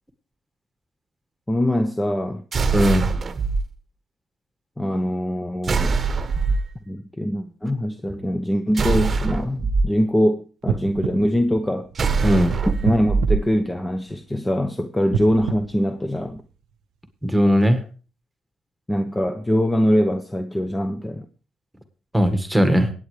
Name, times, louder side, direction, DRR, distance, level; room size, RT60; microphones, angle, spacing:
voice 1, 1.5-2.4 4.8-6.0 6.9-11.9 12.8-16.4 18.9-21.3, equal, 10° left, 8 dB, 0.8 m, -23 dB
sound 1, 2.5-3.6 5.6-6.7 8.8-9.8 12.0-13.4, right 4 dB, 40° right, 1.0 m, -22 dB
voice 2, 2.7-3.1 12.2-12.6 17.2-17.8 22.1-22.9, equal, 5° right, 7 dB, 1.6 m, -18 dB
sound 2, 10.6-12.3 12.8-14.4 15.0-16.7 17.3-17.4, right 7 dB, 85° right, 0.7 m, -30 dB
21.5 x 9.0 x 3.3 m, 0.37 s
cardioid pair, 90°, 0 cm